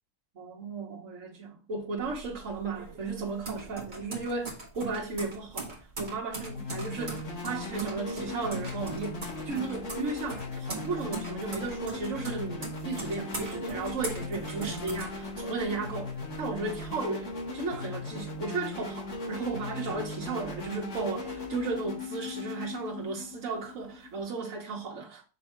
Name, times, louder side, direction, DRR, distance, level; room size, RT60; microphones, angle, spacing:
voice 1, 0.3-25.2, right 4 dB, 70° right, 1.6 m, -35 dB
sound 1, 2.0-15.8 16.2-17.0, right 2 dB, 35° right, 1.8 m, -41 dB
sound 2, 6.5-24.2, left 3 dB, 60° left, 1.8 m, -38 dB
6.3 x 3.4 x 4.4 m
omnidirectional pair, 1.4 m